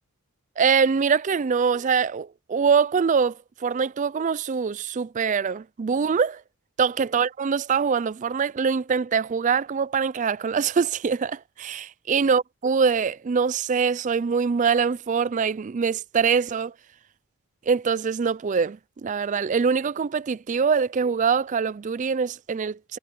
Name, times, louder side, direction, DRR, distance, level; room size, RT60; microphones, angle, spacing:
voice 1, 0.6-6.4 6.8-16.7 17.7-23.0, right 6 dB, 35° right, 0.3 m, -24 dB
head